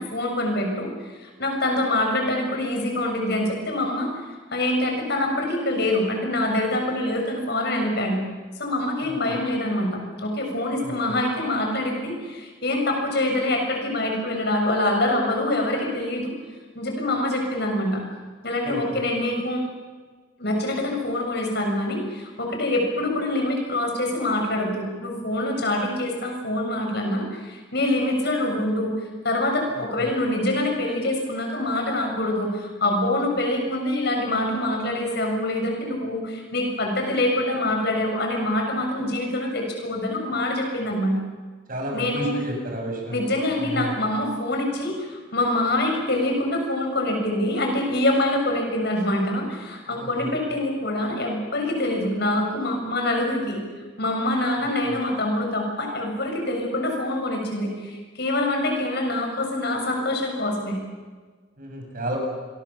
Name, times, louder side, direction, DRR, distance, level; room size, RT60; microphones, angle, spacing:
voice 1, 0.0-4.3 4.5-8.2 8.6-16.3 16.8-18.0 18.4-19.6 20.4-41.2 41.9-42.3 43.1-53.6 54.0-60.8, left 1 dB, 55° left, 2 dB, 7.0 m, -25 dB
voice 2, 10.8-11.2 18.6-18.8 29.7-30.1 41.7-43.2 43.7-44.0 50.0-50.3 61.6-62.2, right 1 dB, 45° right, 1 dB, 7.6 m, -31 dB
28.0 x 22.5 x 7.3 m, 1.4 s
head